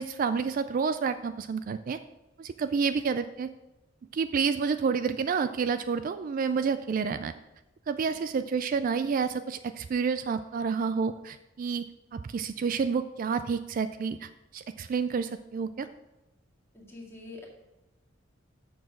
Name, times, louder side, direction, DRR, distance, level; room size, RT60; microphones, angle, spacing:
voice 1, 0.0-2.0 2.4-3.5 4.1-7.3 7.9-11.8 12.1-15.9, right 5 dB, 45° right, 11 dB, 0.3 m, -29 dB
voice 2, 16.7-17.5, left 3 dB, 10° left, -3 dB, 2.0 m, -45 dB
7.0 x 6.0 x 6.2 m, 0.98 s
head